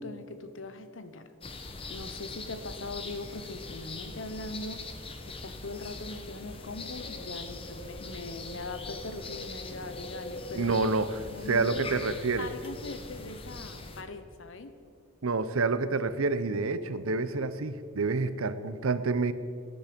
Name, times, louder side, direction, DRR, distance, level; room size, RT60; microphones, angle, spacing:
voice 1, 0.0-1.3 1.9-4.9 5.3-11.9 12.4-14.7, left 2 dB, 65° left, 10 dB, 0.9 m, -41 dB
sound 1, 1.4-14.0, left 3 dB, 25° left, 0.9 m, -41 dB
voice 2, 10.5-11.1 11.5-12.5 15.2-19.3, right 3 dB, 80° right, 13 dB, 0.7 m, -28 dB
17.0 x 11.0 x 5.2 m, 2.3 s
head